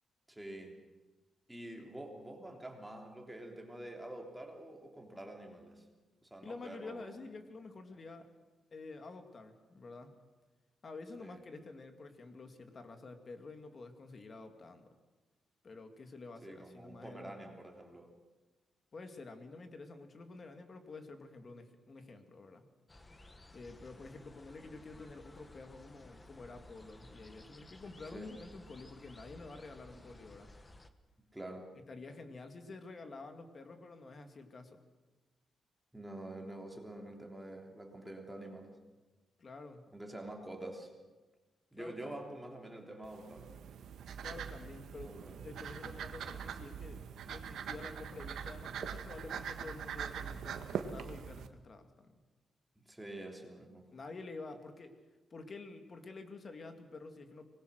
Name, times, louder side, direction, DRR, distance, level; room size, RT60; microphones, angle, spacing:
voice 1, 0.3-0.8 1.5-5.9 6.2-7.1 11.2-11.4 16.4-18.1 28.1-28.3 31.3-31.7 35.9-38.8 39.9-40.9 41.7-43.5 45.0-45.4 52.8-53.9, right 1 dB, 5° right, 1 dB, 3.4 m, -47 dB
voice 2, 6.4-8.3 8.7-10.1 10.8-14.9 15.6-17.4 18.9-22.6 23.5-30.5 31.9-34.8 39.4-39.9 41.8-42.1 44.2-47.0 47.3-52.1 53.9-54.9 55.3-57.4, left 3 dB, 35° left, 6 dB, 2.3 m, -49 dB
sound 1, 22.9-30.9, left 2 dB, 20° left, 1.2 m, -56 dB
sound 2, 43.0-51.5, right 8 dB, 80° right, 1.5 m, -43 dB
25.0 x 20.5 x 6.5 m, 1.2 s
wide cardioid pair, 140°, 0 cm